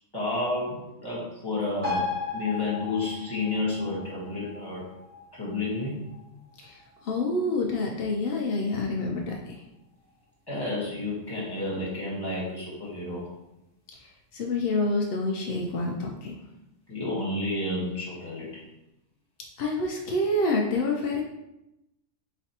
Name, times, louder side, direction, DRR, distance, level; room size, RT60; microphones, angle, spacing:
voice 1, 0.1-2.1 2.3-4.8 5.3-6.1 10.5-13.3 16.9-18.5, left 2 dB, 15° left, -6 dB, 1.3 m, -30 dB
sound 1, 1.8-8.8 9.1-9.2, left 4 dB, 40° right, 1.4 m, -37 dB
voice 2, 7.1-9.6 14.3-16.4 19.6-21.2, left 2 dB, 85° left, 0 dB, 0.5 m, -27 dB
4.0 x 3.3 x 2.8 m, 0.89 s
omnidirectional pair, 1.6 m